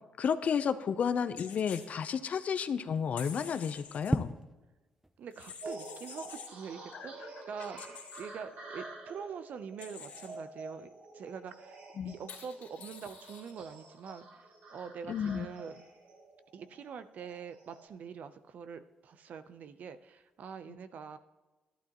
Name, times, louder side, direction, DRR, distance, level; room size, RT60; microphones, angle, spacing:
voice 1, 0.2-4.3 7.0-7.1 12.0-12.1 15.1-15.5, left 7 dB, 55° left, 11 dB, 0.7 m, -32 dB
sound 1, 1.4-1.9 3.2-4.1 5.3-6.5 7.8-8.2 9.8-10.4 12.3-13.5, left 7 dB, 75° left, 2.3 m, -48 dB
sound 2, 3.5-20.6, right 1 dB, 10° right, 0.6 m, -46 dB
voice 2, 5.2-11.8 12.0-15.8 16.5-21.2, right 6 dB, 65° right, 11 dB, 0.7 m, -45 dB
sound 3, 5.6-17.9, right 2 dB, 80° right, 2.5 m, -49 dB
13.0 x 11.5 x 3.0 m, 1.2 s
cardioid pair, 95°, 3 cm